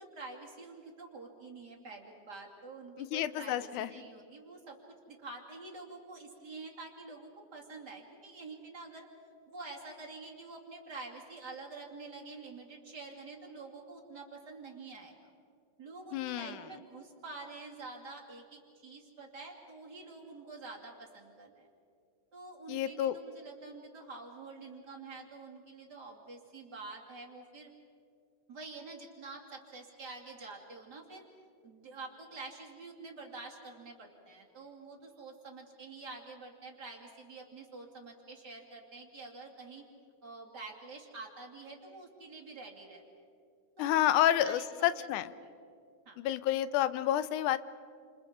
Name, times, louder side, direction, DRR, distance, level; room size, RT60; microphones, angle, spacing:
voice 1, 0.0-4.8 5.1-9.1 9.5-15.3 15.8-21.7 22.3-27.7 28.5-31.2 31.6-39.8 40.2-43.0 43.8-45.1 45.4-45.5 46.1-46.2, right 3 dB, 35° right, -1 dB, 3.1 m, -47 dB
voice 2, 3.0-3.9 16.1-16.6 22.7-23.2 43.8-45.3 46.2-47.6, left 12 dB, 90° left, 14 dB, 2.2 m, -29 dB
29.5 x 28.0 x 5.2 m, 2.4 s
omnidirectional pair, 3.4 m